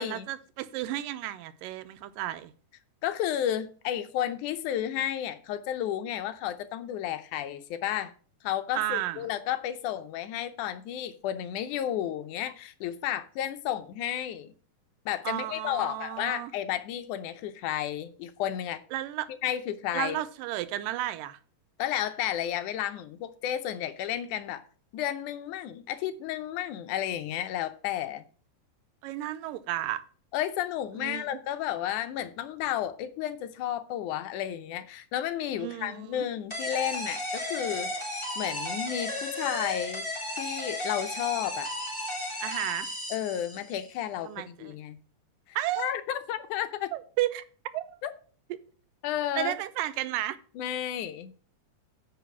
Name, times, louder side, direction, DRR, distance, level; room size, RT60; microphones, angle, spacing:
voice 1, 0.0-2.5 8.8-9.2 15.3-16.5 18.9-19.3 19.9-21.4 29.0-30.0 31.0-31.4 35.6-36.3 42.4-42.9 44.2-44.7 45.6-45.9 46.9-47.4 47.7-48.0 49.4-50.4, right 14 dB, 90° right, 2.3 m, -33 dB
voice 2, 3.0-8.1 8.4-14.5 15.1-18.8 19.4-20.2 21.8-24.6 24.9-28.2 30.3-37.9 38.4-40.1 40.4-41.7 43.1-45.0 45.5-46.9 48.0-48.1 49.0-49.5 50.6-51.3, left 11 dB, 80° left, 2.0 m, -32 dB
sound 1, 36.5-43.9, left 1 dB, 10° left, 3.3 m, -34 dB
9.1 x 4.8 x 7.0 m
omnidirectional pair, 3.8 m